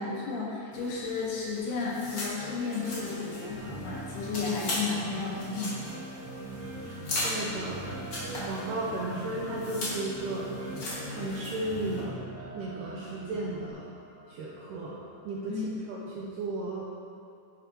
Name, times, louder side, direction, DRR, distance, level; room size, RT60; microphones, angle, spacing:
voice 1, 0.0-6.2 15.5-15.8, left 4 dB, 80° left, -4 dB, 3.2 m, -33 dB
sound 1, 0.7-12.0, left 1 dB, 45° left, 1.9 m, -39 dB
sound 2, 2.4-15.3, right 1 dB, 30° right, 1.5 m, -42 dB
sound 3, 6.5-13.7, equal, 60° right, 2.4 m, -47 dB
voice 2, 7.2-7.9 8.2-10.5 11.1-12.1 12.5-13.9 14.3-15.6 15.9-16.9, right 2 dB, 80° right, -3 dB, 1.9 m, -35 dB
11.0 x 6.2 x 2.9 m, 2.5 s
omnidirectional pair, 4.4 m